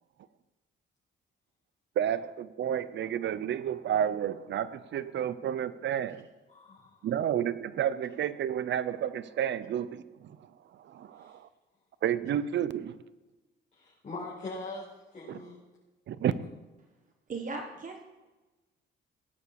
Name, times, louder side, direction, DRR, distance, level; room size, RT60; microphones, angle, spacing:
voice 1, 2.0-6.2 7.0-10.0 10.9-11.3 12.0-13.0 15.3-15.4 16.1-16.3, right 10 dB, 65° right, 16 dB, 0.8 m, -30 dB
voice 2, 6.5-7.0 11.2-11.3 13.7-15.6, left 2 dB, 35° left, -7 dB, 5.0 m, -42 dB
voice 3, 17.3-18.0, right 3 dB, 40° right, 2 dB, 1.6 m, -37 dB
18.0 x 9.7 x 4.8 m, 1.2 s
cardioid pair, 90°, 20 cm